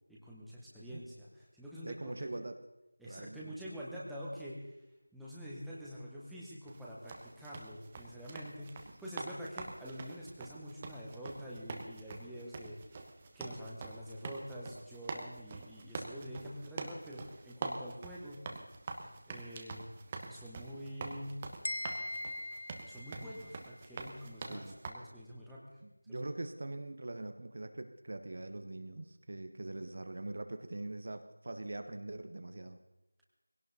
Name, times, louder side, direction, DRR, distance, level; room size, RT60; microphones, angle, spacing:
voice 1, 0.1-2.3 3.0-4.7 5.1-13.0 13.3-18.4 19.3-19.8 20.3-21.4 22.8-25.6 26.1-26.2, equal, ahead, -8 dB, 1.4 m, -46 dB
voice 2, 1.8-2.6 3.0-3.5 24.5-24.8 25.8-32.8, right 2 dB, 45° right, 8 dB, 1.0 m, -43 dB
sound 1, 6.7-24.9, right 3 dB, 20° right, 1.1 m, -45 dB
sound 2, 21.6-23.7, left 1 dB, 65° left, 1.2 m, -40 dB
20.0 x 17.0 x 4.2 m, 0.94 s
figure-of-eight pair, 170°, 0 cm